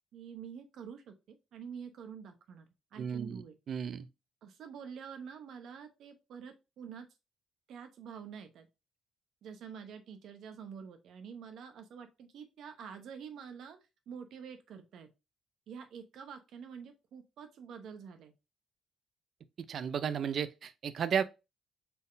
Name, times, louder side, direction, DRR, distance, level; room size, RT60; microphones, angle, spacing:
voice 1, 0.1-3.5 4.4-7.1 7.7-8.7 9.4-13.8 14.1-15.1 15.7-18.3, right 7 dB, 75° right, 0.9 m, -47 dB
voice 2, 3.0-4.1 19.7-21.2, right 7 dB, 60° right, 0.5 m, -34 dB
4.4 x 3.6 x 2.6 m
cardioid pair, 90°, 0 cm